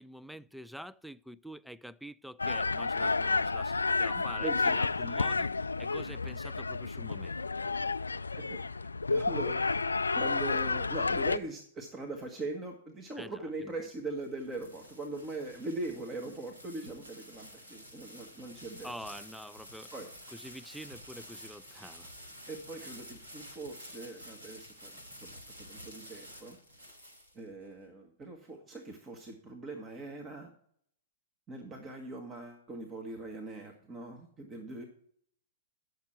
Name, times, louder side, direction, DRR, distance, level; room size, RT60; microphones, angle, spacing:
voice 1, 0.0-7.4 13.2-13.7 18.8-19.9 20.3-22.1, equal, ahead, 0.3 m, -46 dB
sound 1, 2.4-11.4, left 3 dB, 90° left, 0.3 m, -31 dB
voice 2, 4.1-4.8 8.3-18.9 19.9-20.1 22.5-26.6 27.3-30.5 31.5-34.8, right 2 dB, 25° right, 1.4 m, -41 dB
smashing plastic bag, 14.1-27.7, equal, 80° right, 3.1 m, -50 dB
10.5 x 6.6 x 4.5 m
hypercardioid pair, 105°, 0 cm